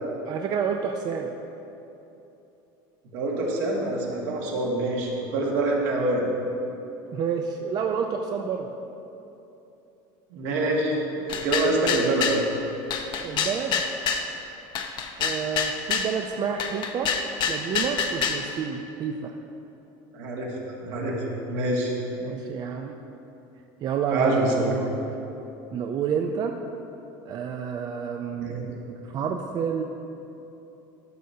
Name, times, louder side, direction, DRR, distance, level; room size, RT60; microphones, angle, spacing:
voice 1, 0.3-1.3 7.1-8.7 13.2-13.8 15.2-17.1 17.5-19.4 22.2-22.9 23.8-24.9 25.7-26.6 27.2-29.8, right 6 dB, 40° right, 3 dB, 0.4 m, -29 dB
voice 2, 3.1-6.2 10.3-12.4 20.1-20.5 20.8-21.2 21.5-21.9 24.1-24.7 28.4-28.7, right 2 dB, 70° right, -2 dB, 1.7 m, -26 dB
sound 1, 11.3-12.4 12.9-14.3 14.8-16.1 16.6-18.4, left 6 dB, 45° left, 0.7 m, -27 dB
12.0 x 6.5 x 2.8 m, 2.9 s
supercardioid pair, 115°, 11 cm